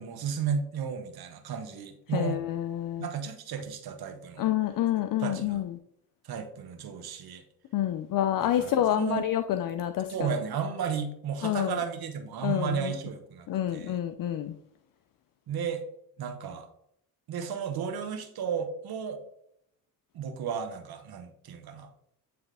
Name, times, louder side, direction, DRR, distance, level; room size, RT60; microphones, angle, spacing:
voice 1, 0.0-2.4 3.0-4.5 5.2-5.6 6.2-7.4 8.4-9.3 10.1-14.0 15.5-15.8 16.2-16.7 17.3-19.2 20.1-21.9, right 6 dB, 70° right, 6 dB, 1.3 m, -34 dB
voice 2, 2.1-3.1 4.4-5.7 7.7-10.3 11.4-11.7 12.4-12.9 13.5-14.6, left 11 dB, 60° left, 9 dB, 0.5 m, -28 dB
9.6 x 3.4 x 3.4 m, 0.74 s
cardioid pair, 70°, 38 cm